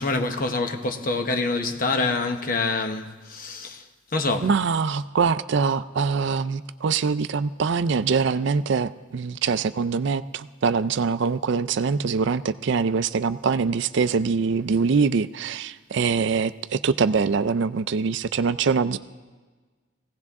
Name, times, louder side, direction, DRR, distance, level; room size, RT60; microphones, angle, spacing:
voice 1, 0.0-3.9 4.1-4.5, left 3 dB, 45° left, 0.9 m, -26 dB
voice 2, 4.4-19.0, right 5 dB, 60° right, 0.4 m, -23 dB
20.5 x 16.5 x 3.6 m
head